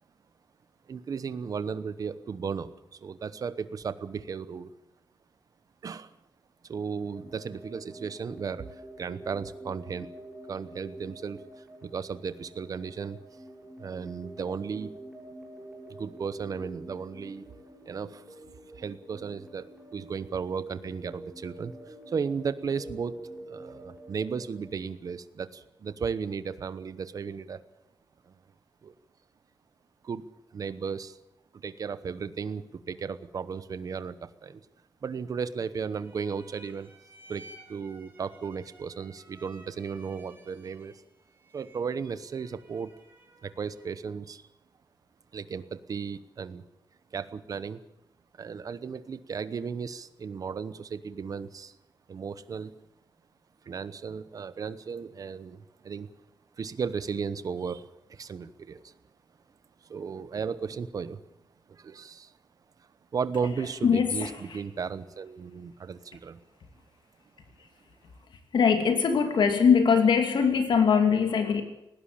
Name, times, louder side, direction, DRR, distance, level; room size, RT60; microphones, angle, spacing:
voice 1, 0.9-4.7 5.8-6.1 6.6-10.1 10.5-13.2 13.8-15.0 15.9-17.5 17.8-18.2 18.7-23.1 23.5-27.6 28.3-28.4 28.8-28.9 30.0-31.2 31.5-34.6 35.0-36.9 37.3-40.9 41.5-42.9 43.4-44.5 45.3-46.6 47.1-47.8 48.4-51.8 52.1-52.7 53.6-56.1 56.6-58.9 59.8-61.2 61.7-62.3 63.1-66.4, right 6 dB, 50° right, 14 dB, 1.0 m, -35 dB
sound 1, 7.0-24.6, right 1 dB, 10° right, 7.5 m, -47 dB
sound 2, 35.9-44.0, right 2 dB, 30° right, 5.2 m, -55 dB
voice 2, 63.8-64.6 68.5-71.6, left 6 dB, 75° left, 6 dB, 2.6 m, -22 dB
19.0 x 17.0 x 8.6 m, 0.87 s
wide cardioid pair, 180°, 8 cm